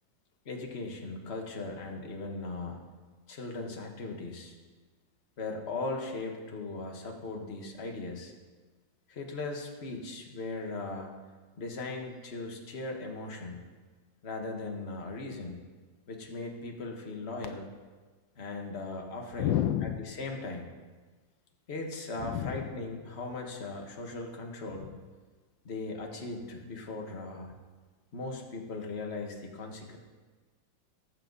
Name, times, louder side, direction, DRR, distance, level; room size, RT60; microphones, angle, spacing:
voice 1, 0.4-2.8 3.3-4.6 5.4-8.3 9.1-11.1 11.6-13.6 14.2-15.6 16.1-17.6 18.4-19.5 20.1-20.7 21.7-24.9 25.6-27.5 28.1-30.0, left 3 dB, 35° left, 1 dB, 1.6 m, -38 dB
voice 2, 19.4-20.1 22.2-22.7 24.7-24.9, left 11 dB, 80° left, 8 dB, 1.3 m, -31 dB
19.0 x 7.8 x 4.0 m, 1.4 s
omnidirectional pair, 2.1 m